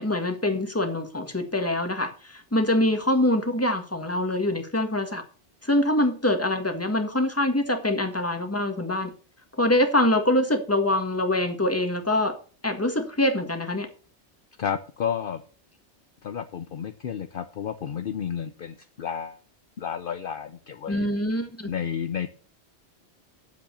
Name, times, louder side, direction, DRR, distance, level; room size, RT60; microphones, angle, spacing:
voice 1, 0.0-5.2 5.6-9.1 9.6-12.4 12.6-13.9 20.9-21.7, left 1 dB, 15° left, 6 dB, 1.6 m, -24 dB
voice 2, 14.6-15.4 16.2-19.4 19.8-21.0 21.7-22.4, left 8 dB, 55° left, 9 dB, 0.8 m, -31 dB
9.4 x 7.6 x 6.9 m, 0.40 s
omnidirectional pair, 1.1 m